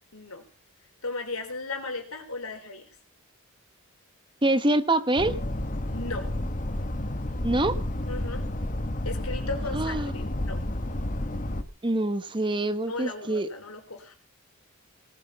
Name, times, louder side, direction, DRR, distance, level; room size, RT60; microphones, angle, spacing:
voice 1, 0.1-0.4 1.0-2.9 5.9-6.2 8.1-8.4 9.0-10.6 12.9-14.1, left 3 dB, 80° left, 5 dB, 4.2 m, -36 dB
voice 2, 4.4-5.3 7.4-7.7 9.7-10.1 11.8-13.5, right 2 dB, 20° right, 12 dB, 1.0 m, -25 dB
sound 1, 5.2-11.6, left 1 dB, 35° left, 1.2 m, -31 dB
19.0 x 7.5 x 6.8 m, 0.39 s
head